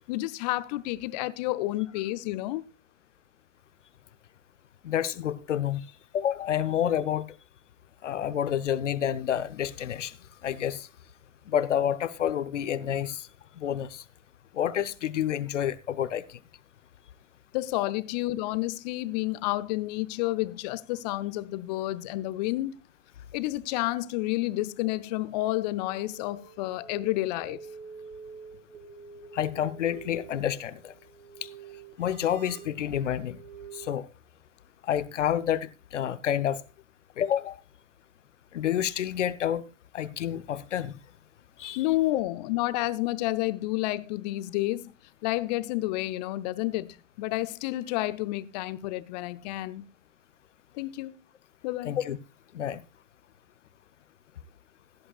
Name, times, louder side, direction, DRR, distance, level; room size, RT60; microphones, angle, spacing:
voice 1, 0.1-2.6 17.5-22.7 23.3-27.6 41.8-44.9 45.2-49.9 50.7-51.2 51.6-52.0, left 17 dB, 35° left, 0.7 m, -30 dB
voice 2, 4.8-5.8 6.1-7.3 8.0-10.1 10.4-10.9 11.5-13.3 13.6-14.0 14.5-16.4 29.3-30.9 32.0-33.4 33.7-34.1 34.9-36.6 37.2-37.6 38.5-39.7 39.9-41.0 41.6-41.8 51.8-52.2 52.5-52.8, left 10 dB, 65° left, 0.9 m, -29 dB
sound 1, 24.8-33.9, right 6 dB, 25° right, 2.4 m, -48 dB
17.0 x 11.0 x 2.4 m
figure-of-eight pair, 110°, 39 cm